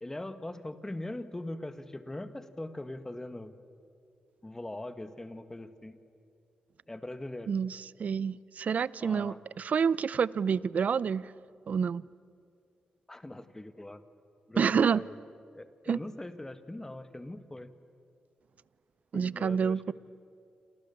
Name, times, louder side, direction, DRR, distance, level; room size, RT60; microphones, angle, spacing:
voice 1, 0.0-3.5 4.4-6.0 6.9-7.5 9.0-9.4 13.1-14.0 14.5-15.2 15.5-17.7 19.1-19.9, left 1 dB, 15° left, 1.8 m, -41 dB
voice 2, 7.5-11.3 11.7-12.0 14.6-15.0 15.9-16.0 19.1-19.9, right 6 dB, 60° right, 0.6 m, -28 dB
28.0 x 27.5 x 7.1 m
cardioid pair, 60°, 3 cm